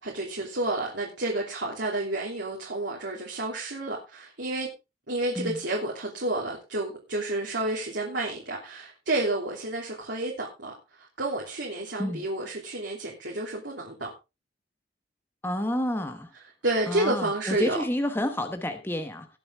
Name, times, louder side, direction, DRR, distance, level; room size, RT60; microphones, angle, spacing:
voice 1, 0.0-4.7 5.1-14.1 16.6-17.8, right 2 dB, 70° right, 3.0 m, -30 dB
voice 2, 15.4-16.3 16.9-19.3, left 1 dB, 10° left, 1.1 m, -29 dB
19.5 x 7.1 x 3.5 m
head